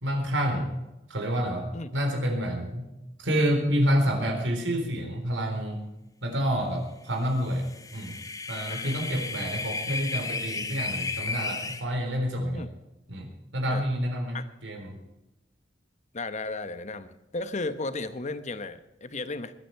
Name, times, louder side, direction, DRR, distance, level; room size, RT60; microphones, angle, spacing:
voice 1, 0.0-0.7 1.1-2.9 3.2-5.8 6.2-7.7 7.9-8.1 8.5-12.7 13.1-14.4 14.6-15.0, equal, 90° right, 3 dB, 4.1 m, -28 dB
sound 1, 7.5-11.8, left 3 dB, 20° left, 1.3 m, -33 dB
voice 2, 8.7-9.3 12.5-12.7 13.7-13.8 14.3-14.4 16.1-19.5, left 3 dB, 40° left, 12 dB, 1.0 m, -35 dB
21.5 x 10.0 x 4.7 m, 0.96 s
head